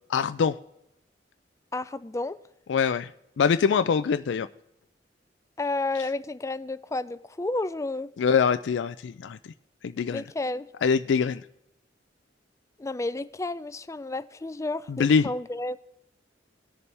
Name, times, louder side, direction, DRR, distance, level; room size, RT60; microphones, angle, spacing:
voice 1, 0.1-0.6 2.7-3.1 3.4-4.5 8.2-9.4 9.8-10.2 10.8-11.4 14.9-15.3, left 6 dB, 85° left, 0.4 m, -23 dB
voice 2, 1.7-2.4 5.6-8.1 10.1-10.7 12.8-15.8, left 2 dB, 15° left, 0.4 m, -31 dB
19.0 x 6.9 x 3.4 m
head